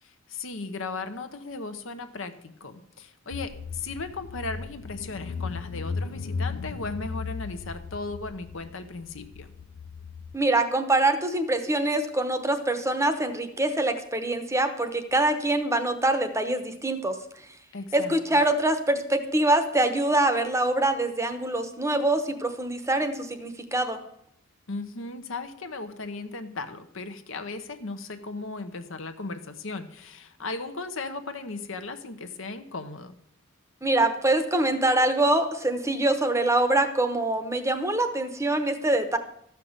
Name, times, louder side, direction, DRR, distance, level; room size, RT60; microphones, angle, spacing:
voice 1, 0.0-9.5 17.7-18.4 24.7-33.2, left 3 dB, 65° left, 9 dB, 1.0 m, -36 dB
Car / Engine, 3.3-10.3, left 5 dB, 90° left, 0.5 m, -36 dB
voice 2, 10.3-17.2 17.9-24.0 33.8-39.2, right 2 dB, 15° right, 9 dB, 0.9 m, -24 dB
13.0 x 5.8 x 8.0 m, 0.74 s
head